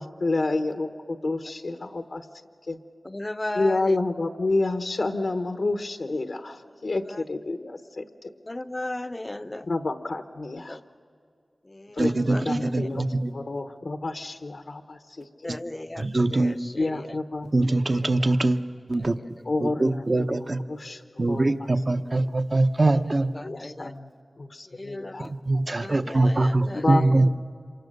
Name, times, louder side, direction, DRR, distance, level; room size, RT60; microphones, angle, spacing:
voice 1, 0.0-2.2 2.7-2.8 3.5-8.3 9.7-10.8 12.0-13.0 13.3-15.3 16.6-17.5 18.0-18.3 19.5-20.4 20.7-21.5 23.4-24.1 24.4-25.3 25.5-25.7 26.7-27.4, left 2 dB, 75° left, 8 dB, 1.0 m, -29 dB
voice 2, 3.0-4.0 6.8-7.3 8.5-9.7 10.7-10.8 11.6-12.9 15.4-17.2 19.0-19.5 23.3-23.9 24.7-25.3 25.8-27.3, left 1 dB, 30° left, 12 dB, 0.6 m, -36 dB
voice 3, 12.0-13.3 16.0-16.6 17.5-18.6 18.9-19.2 19.6-20.6 21.2-23.3 25.2-27.4, right 2 dB, 50° right, 8 dB, 0.9 m, -23 dB
27.0 x 24.5 x 6.7 m, 2.4 s
cardioid pair, 45°, 0 cm